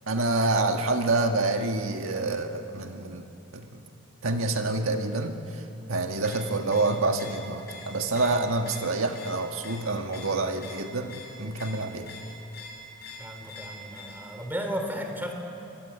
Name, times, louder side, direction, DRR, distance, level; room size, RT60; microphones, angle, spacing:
voice 1, 0.1-3.2 3.5-3.8 4.2-5.6 5.9-12.1, right 2 dB, 80° right, 5 dB, 1.7 m, -27 dB
sound 1, 6.1-14.4, left 2 dB, 50° left, 5.0 m, -46 dB
voice 2, 13.2-15.3, equal, 10° right, 4 dB, 3.0 m, -34 dB
24.5 x 21.5 x 9.8 m, 2.8 s
head